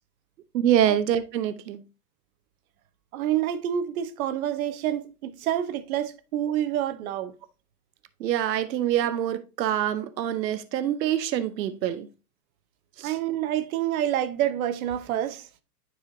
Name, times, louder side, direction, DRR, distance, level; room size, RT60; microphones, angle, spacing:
voice 1, 0.5-1.8 8.2-12.1 13.0-13.1, right 11 dB, 85° right, 0.8 m, -25 dB
voice 2, 3.1-7.3 13.0-15.5, right 11 dB, 60° right, 1.1 m, -28 dB
9.9 x 4.8 x 2.7 m
hypercardioid pair, 125°, 49 cm